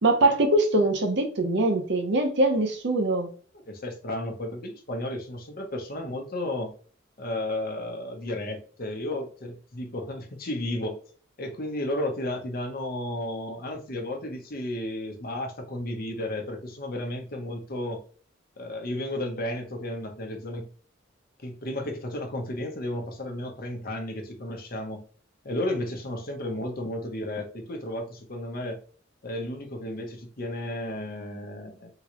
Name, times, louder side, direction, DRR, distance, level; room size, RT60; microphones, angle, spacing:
voice 1, 0.0-3.3, right 2 dB, 65° right, 4 dB, 0.8 m, -23 dB
voice 2, 3.6-6.7 7.2-11.0 11.4-18.0 18.6-20.7 21.4-25.0 25.4-28.8 29.2-31.9, left 1 dB, 50° left, 3 dB, 0.9 m, -33 dB
3.8 x 2.3 x 2.9 m, 0.41 s
head